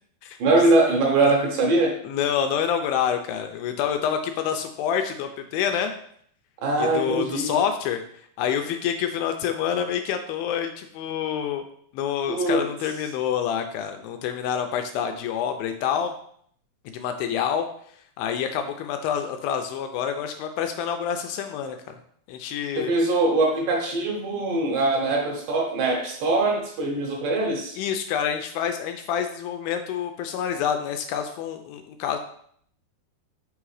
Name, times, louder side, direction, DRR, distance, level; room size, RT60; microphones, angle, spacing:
voice 1, 0.4-2.0 6.6-7.6 12.3-12.7 22.8-27.8, right 2 dB, 70° right, 0 dB, 2.3 m, -22 dB
voice 2, 2.1-5.9 6.8-8.0 8.4-11.6 11.9-16.1 16.9-17.7 18.2-21.8 22.3-22.9 27.8-32.2, left 8 dB, 80° left, 6 dB, 2.2 m, -27 dB
5.6 x 3.7 x 4.8 m, 0.63 s
omnidirectional pair, 4.4 m